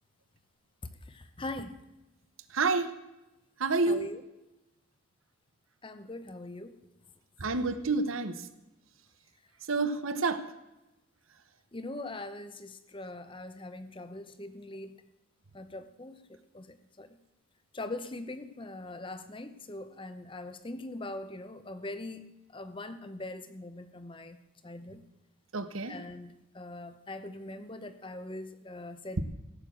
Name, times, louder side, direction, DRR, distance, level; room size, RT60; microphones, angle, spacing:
voice 1, 1.1-1.8 3.9-4.2 5.8-6.8 11.7-14.9 15.5-17.1 17.7-22.3 22.5-24.4 24.6-25.0 25.9-29.2, left 2 dB, 25° left, 10 dB, 0.8 m, -42 dB
voice 2, 2.5-2.9 3.6-4.0 7.4-8.3 9.7-10.5 25.5-26.0, right 3 dB, 80° right, 12 dB, 1.0 m, -28 dB
15.5 x 6.7 x 7.7 m, 0.96 s
head